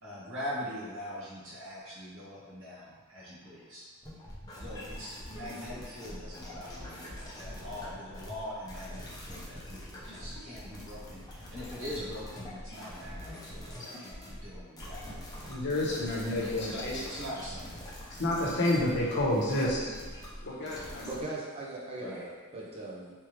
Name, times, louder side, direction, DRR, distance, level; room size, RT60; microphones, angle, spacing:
voice 1, 0.0-3.8 4.6-15.2 16.3-16.6 16.9-17.7 21.9-22.3, left 1 dB, 60° right, -7 dB, 1.3 m, -42 dB
sound 1, 4.0-21.2, equal, 15° left, 0.7 m, -44 dB
voice 2, 15.5-17.0 18.2-20.0 20.4-21.0, left 1 dB, 55° left, -5 dB, 0.9 m, -29 dB
voice 3, 21.0-23.1, right 2 dB, 25° right, -6 dB, 0.8 m, -39 dB
3.4 x 3.2 x 3.1 m, 1.4 s
head